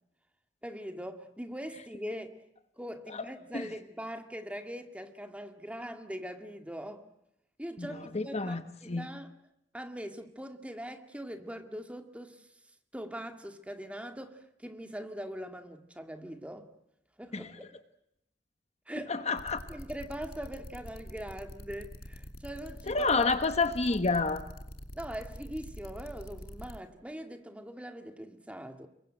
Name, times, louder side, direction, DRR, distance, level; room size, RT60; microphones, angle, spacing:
voice 1, 0.6-2.4 2.8-7.0 7.6-9.3 9.7-12.5 12.9-16.7 17.2-17.7 18.9-19.1 19.7-23.1 23.9-24.0 24.9-28.9, equal, 5° right, 2.1 m, -42 dB
voice 2, 7.8-9.1 17.3-17.5 19.1-19.6 22.9-24.4, left 3 dB, 35° left, 1.2 m, -29 dB
sound 1, 19.4-26.8, equal, 60° left, 2.6 m, -45 dB
27.5 x 23.0 x 7.8 m
head